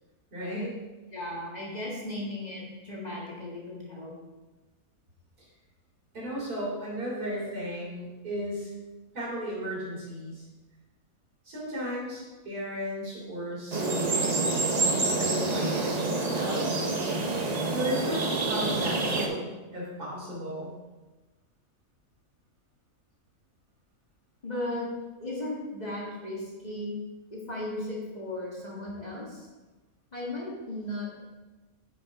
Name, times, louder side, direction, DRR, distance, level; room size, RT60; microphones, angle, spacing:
voice 1, 0.3-0.8 6.1-8.7 9.1-10.4 11.4-16.7 17.7-20.7, equal, 85° right, -6 dB, 3.7 m, -35 dB
voice 2, 1.1-4.1 24.4-24.9 25.2-26.9 27.3-29.5 30.1-31.2, left 1 dB, 30° left, -4 dB, 1.8 m, -36 dB
sound 1, 13.7-19.3, right 3 dB, 35° right, 0.7 m, -27 dB
10.5 x 5.6 x 3.6 m, 1.2 s
omnidirectional pair, 1.6 m